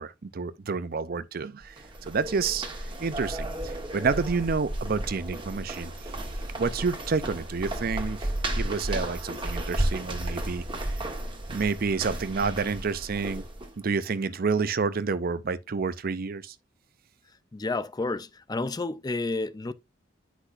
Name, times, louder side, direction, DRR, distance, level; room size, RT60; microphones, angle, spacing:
voice 1, 0.0-1.8 2.0-5.9 6.6-8.3 8.6-10.6 11.5-13.4 13.8-16.5, right 4 dB, 50° right, 0.6 m, -29 dB
sound 1, 1.6-13.7, right 1 dB, 25° right, 1.4 m, -33 dB
voice 2, 17.5-19.7, left 3 dB, 20° left, 0.4 m, -30 dB
9.9 x 6.0 x 2.5 m
head